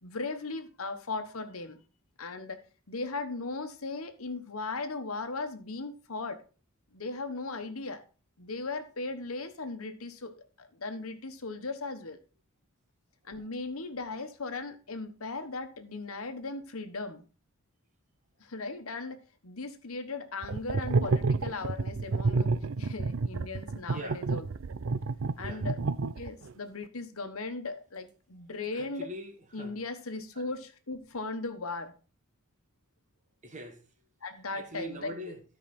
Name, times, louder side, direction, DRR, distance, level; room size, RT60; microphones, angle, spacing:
voice 1, 0.0-1.8 2.2-2.6 2.9-6.4 6.9-8.0 8.4-12.2 13.2-17.2 18.4-22.5 22.8-24.4 25.4-25.8 26.2-29.0 29.5-31.9 34.2-35.1, left 3 dB, 85° left, 1.3 m, -37 dB
sound 1, 20.4-26.5, right 3 dB, 65° right, 0.5 m, -29 dB
voice 2, 23.9-24.3 25.4-25.7 28.7-29.8 30.3-30.5 33.4-33.8 34.5-35.4, right 1 dB, 35° right, 1.5 m, -43 dB
13.0 x 5.2 x 4.3 m
head